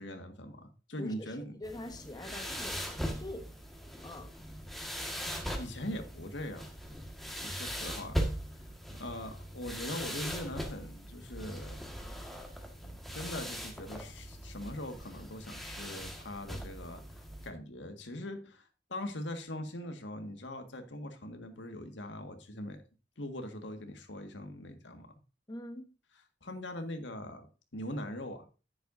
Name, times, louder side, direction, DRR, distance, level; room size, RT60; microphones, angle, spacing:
voice 1, 0.0-1.5 5.6-6.6 7.4-8.2 8.6-11.8 12.8-17.0 17.4-22.8 23.2-25.1 26.4-27.5 27.7-28.5, left 1 dB, 90° left, 1.8 m, -41 dB
voice 2, 1.0-3.5 4.0-4.3 25.5-25.9, left 1 dB, 20° left, 1.1 m, -44 dB
sound 1, 1.6-17.5, equal, ahead, 1.6 m, -40 dB
10.5 x 9.9 x 2.6 m
head